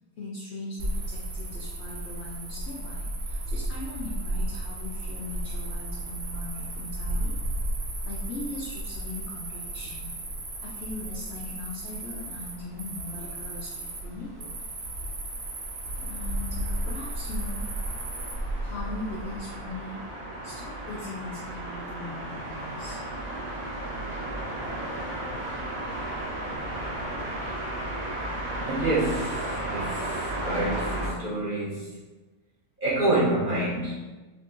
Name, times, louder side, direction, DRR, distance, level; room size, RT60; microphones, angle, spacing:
voice 1, 0.2-7.3 8.0-10.1 10.6-14.5 16.0-17.7 18.6-20.1 20.4-23.0 27.2-27.3, left 2 dB, 70° left, -4 dB, 0.6 m, -39 dB
Cricket, 0.8-19.7, right 1 dB, 60° right, 1.1 m, -34 dB
sound 1, 15.3-31.1, right 1 dB, 85° right, 1.5 m, -35 dB
voice 2, 28.6-32.0 32.8-34.1, right 1 dB, 45° right, -8 dB, 0.7 m, -28 dB
4.9 x 2.6 x 2.5 m, 1.2 s
omnidirectional pair, 1.7 m